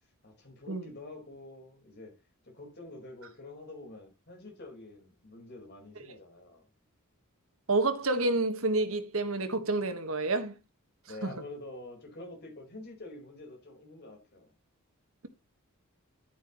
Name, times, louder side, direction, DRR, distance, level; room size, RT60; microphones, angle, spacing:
voice 1, 0.2-2.2 2.4-6.7 11.1-14.5, left 2 dB, 50° left, 4.5 m, -47 dB
voice 2, 7.7-10.6 11.2-11.3, right 2 dB, 65° right, 1.5 m, -29 dB
10.5 x 9.5 x 3.1 m
head